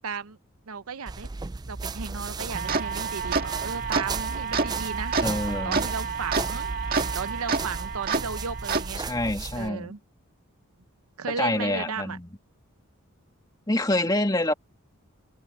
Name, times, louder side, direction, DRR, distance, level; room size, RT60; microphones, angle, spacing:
voice 1, 0.0-0.4 0.7-1.3 1.7-5.2 5.6-6.7 7.1-9.0 9.6-10.0 11.2-12.2, right 5 dB, 90° right, 0.8 m, -35 dB
sound 1, 1.1-9.7, right 4 dB, 20° right, 0.3 m, -35 dB
sound 2, 2.5-8.9, right 5 dB, 40° right, 1.9 m, -29 dB
voice 2, 5.2-5.8 9.0-9.9 11.4-12.3 13.7-14.5, left 1 dB, 20° left, 2.3 m, -26 dB
head